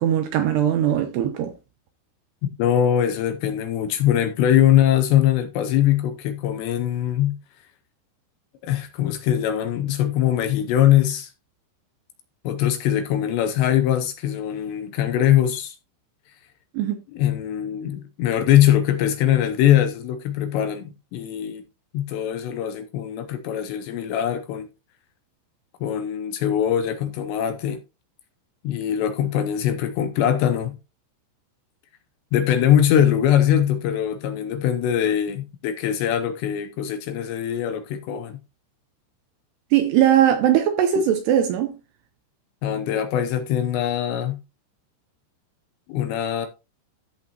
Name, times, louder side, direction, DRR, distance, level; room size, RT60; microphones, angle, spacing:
voice 1, 0.0-1.5 16.7-17.0 39.7-41.8, right 10 dB, 75° right, 2.5 m, -20 dB
voice 2, 2.6-7.4 8.6-11.3 12.4-15.8 17.1-21.6 21.9-24.7 25.8-27.8 28.6-30.8 32.3-38.4 42.6-44.4 45.9-46.5, left 10 dB, 75° left, 2.7 m, -22 dB
13.5 x 5.8 x 2.9 m
omnidirectional pair, 5.6 m